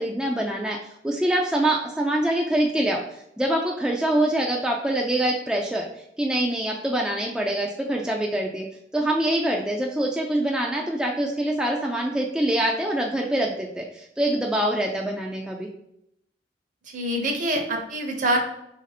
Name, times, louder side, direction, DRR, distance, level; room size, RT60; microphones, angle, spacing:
voice 1, 0.0-3.0 3.4-5.9 6.2-8.7 8.9-15.7, right 1 dB, 5° right, -1 dB, 0.3 m, -25 dB
voice 2, 16.9-18.4, right 1 dB, 45° right, 3 dB, 0.7 m, -25 dB
3.4 x 2.6 x 4.1 m, 0.77 s
head